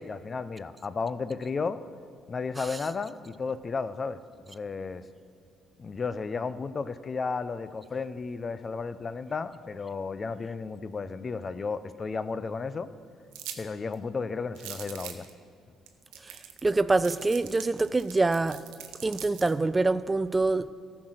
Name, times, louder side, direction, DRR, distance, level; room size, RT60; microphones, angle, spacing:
voice 1, 0.0-1.8 2.3-4.2 4.5-5.0 5.8-12.9 13.6-15.3, left 4 dB, 40° left, 14 dB, 0.5 m, -33 dB
sound 1, 13.3-13.6 13.9-14.0 14.5-15.3 15.9-16.0 16.1-16.7 17.0-19.5, right 10 dB, 80° right, 0.8 m, -42 dB
voice 2, 16.6-18.6 19.0-20.7, right 3 dB, 25° right, 15 dB, 0.4 m, -25 dB
14.0 x 6.0 x 6.4 m, 2.4 s
supercardioid pair, 60°, 0 cm